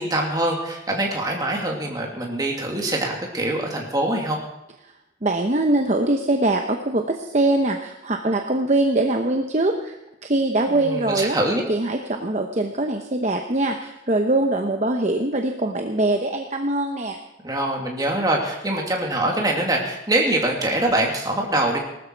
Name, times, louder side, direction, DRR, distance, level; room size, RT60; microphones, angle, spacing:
voice 1, 0.0-4.4 10.7-11.6 17.4-21.8, right 1 dB, 20° right, 0 dB, 2.6 m, -24 dB
voice 2, 5.2-10.0 10.2-11.4 11.7-17.2, right 2 dB, 40° right, 4 dB, 0.9 m, -22 dB
19.0 x 13.0 x 4.6 m, 0.90 s
head